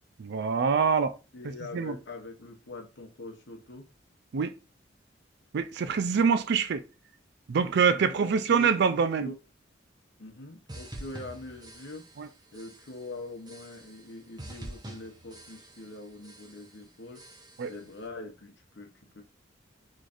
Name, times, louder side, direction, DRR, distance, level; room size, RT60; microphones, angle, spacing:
voice 1, 0.2-1.1 1.7-1.9 4.3-4.5 5.5-6.8 7.5-9.3 12.2-12.3 17.6-17.7, right 6 dB, 60° right, 0.4 m, -25 dB
voice 2, 1.3-3.9 7.7-9.3 10.2-12.0 12.5-17.2 17.6-19.2, left 2 dB, 65° left, 0.9 m, -43 dB
sound 1, 10.7-12.3 12.5-13.0 13.5-14.1 14.4-16.0 16.2-16.7 17.1-17.8, right 1 dB, 20° right, 0.8 m, -46 dB
3.9 x 3.1 x 2.5 m
head